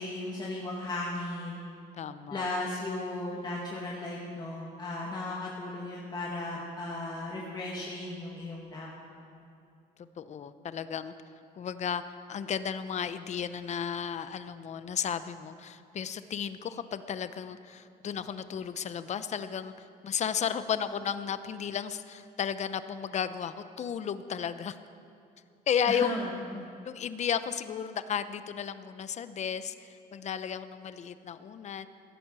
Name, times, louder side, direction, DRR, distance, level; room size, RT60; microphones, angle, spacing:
voice 1, 0.0-1.6 2.3-9.4 25.9-26.7, left 2 dB, 25° left, -4 dB, 2.3 m, -36 dB
voice 2, 2.0-2.5 10.2-11.1 11.5-24.8 25.7-26.1 26.8-31.9, left 8 dB, 45° left, 12 dB, 0.8 m, -34 dB
16.5 x 10.5 x 7.6 m, 2.6 s
cardioid pair, 110°, 17 cm